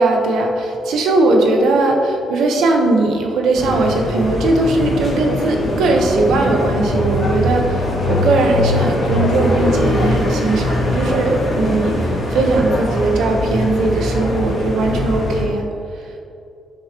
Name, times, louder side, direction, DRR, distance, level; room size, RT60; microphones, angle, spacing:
voice 1, 0.0-15.7, right 2 dB, 85° right, 2 dB, 1.3 m, -18 dB
sound 1, 3.6-15.4, left 1 dB, 35° left, 2.1 m, -21 dB
12.5 x 7.3 x 3.1 m, 2.7 s
cardioid pair, 145°, 0 cm